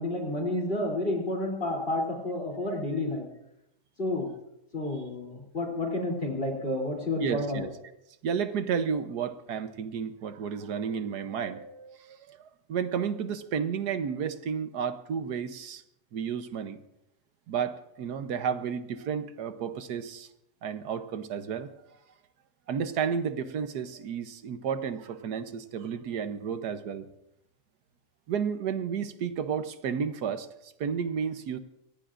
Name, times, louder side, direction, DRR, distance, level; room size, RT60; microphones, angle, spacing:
voice 1, 0.0-3.3 4.0-4.3 4.7-7.7, left 1 dB, 30° left, 1 dB, 3.4 m, -30 dB
voice 2, 7.2-7.7 8.2-15.8 16.1-16.8 17.5-20.3 20.6-21.7 22.7-27.1 28.3-31.6, right 7 dB, 70° right, 10 dB, 1.4 m, -32 dB
25.0 x 18.0 x 2.6 m, 0.85 s
omnidirectional pair, 1.9 m